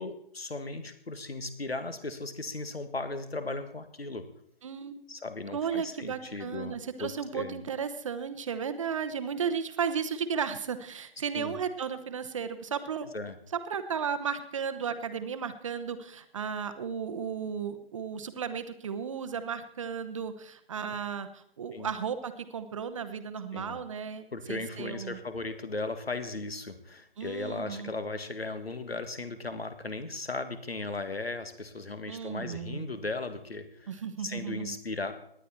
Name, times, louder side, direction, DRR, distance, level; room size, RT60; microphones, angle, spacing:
voice 1, 0.0-4.3 5.1-7.6 11.3-11.6 13.1-13.4 21.7-21.9 23.5-23.8 24.3-35.1, left 3 dB, 80° left, 10 dB, 1.9 m, -37 dB
voice 2, 4.6-5.1 5.5-13.1 13.5-25.2 27.2-27.9 32.1-32.9 33.9-34.8, right 7 dB, 30° right, 10 dB, 0.9 m, -34 dB
18.5 x 10.5 x 4.4 m, 0.70 s
figure-of-eight pair, 145°, 30 cm